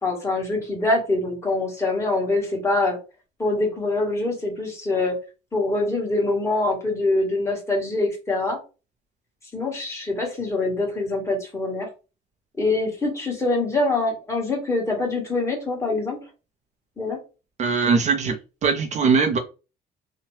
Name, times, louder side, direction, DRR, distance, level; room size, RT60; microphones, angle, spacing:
voice 1, 0.0-3.0 3.4-5.2 5.5-8.6 9.5-11.9 12.6-16.2 17.0-17.2, left 2 dB, 15° left, -1 dB, 1.3 m, -24 dB
voice 2, 17.6-19.4, right 5 dB, 45° right, 6 dB, 0.5 m, -21 dB
2.8 x 2.1 x 3.1 m, 0.31 s
cardioid pair, 110°, 17 cm